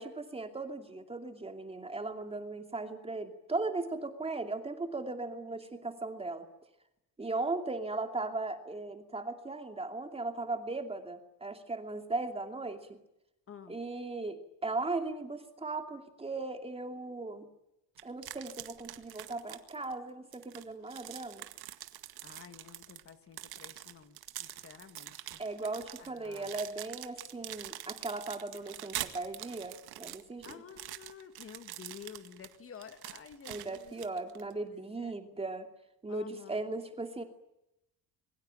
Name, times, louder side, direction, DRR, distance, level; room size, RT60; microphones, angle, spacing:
voice 1, 0.0-6.5 7.2-13.0 13.7-17.5 18.0-21.5 25.4-30.6 33.5-35.7 36.0-37.2, right 3 dB, 15° right, 6 dB, 2.6 m, -37 dB
voice 2, 13.5-13.8 22.2-25.4 26.0-26.5 30.4-34.0 34.7-35.2 36.1-36.6, left 7 dB, 35° left, 9 dB, 2.1 m, -51 dB
sound 1, 18.0-19.9 20.3-34.5, right 14 dB, 80° right, 1.9 m, -45 dB
26.0 x 23.0 x 9.0 m, 0.86 s
cardioid pair, 165°, 37 cm